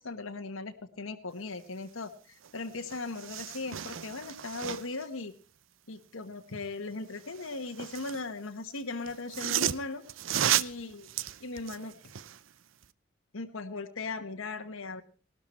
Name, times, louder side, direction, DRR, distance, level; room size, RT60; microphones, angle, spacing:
voice 1, 0.0-5.3 5.9-10.0 10.5-11.0 11.4-12.0 13.3-15.0, left 3 dB, 85° left, 5 dB, 1.3 m, -38 dB
sound 1, 2.4-2.5 2.8-5.0 7.2-8.3 9.1-12.4 12.8-12.9, right 10 dB, 70° right, 0.6 m, -33 dB
18.0 x 12.5 x 4.4 m, 0.38 s
head